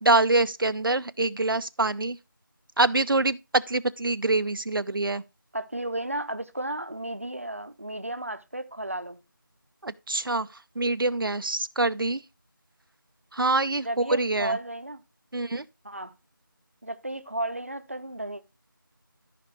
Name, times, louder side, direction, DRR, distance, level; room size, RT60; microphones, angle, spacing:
voice 1, 0.0-2.2 2.8-5.2 9.8-10.5 10.8-12.2 13.3-14.6 15.3-15.6, right 2 dB, 80° right, 0.6 m, -25 dB
voice 2, 5.5-9.2 13.8-15.0 15.8-16.1 16.8-18.4, right 1 dB, 40° right, 0.7 m, -33 dB
14.0 x 5.1 x 3.2 m
figure-of-eight pair, 180°, 11 cm